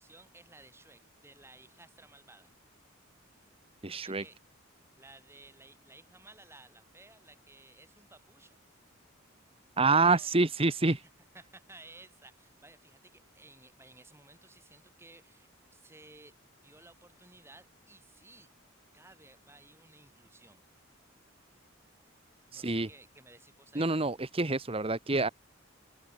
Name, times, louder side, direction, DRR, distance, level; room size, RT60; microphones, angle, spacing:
voice 1, 0.0-2.5 3.9-4.4 5.0-8.6 10.1-10.3 10.9-11.0 11.3-16.4 16.6-18.5 18.9-20.6 22.5-23.9, right 2 dB, 10° right, 8.0 m, -56 dB
voice 2, 3.8-4.2 9.8-11.0 22.5-22.9 23.7-25.3, right 3 dB, 30° right, 1.3 m, -27 dB
open air
head